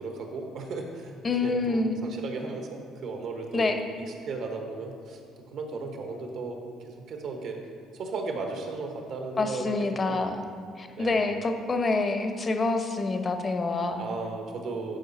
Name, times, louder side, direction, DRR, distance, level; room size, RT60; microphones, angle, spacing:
voice 1, 0.0-1.1 1.4-3.7 4.3-5.2 5.5-6.6 7.1-7.6 7.9-10.3 11.0-11.4 14.0-15.0, right 3 dB, 65° right, 3 dB, 1.2 m, -35 dB
voice 2, 1.2-2.0 3.5-3.8 9.4-10.5 10.8-14.0, left 3 dB, 30° left, 6 dB, 0.8 m, -27 dB
11.5 x 4.8 x 4.1 m, 2.2 s
cardioid pair, 95°, 0 cm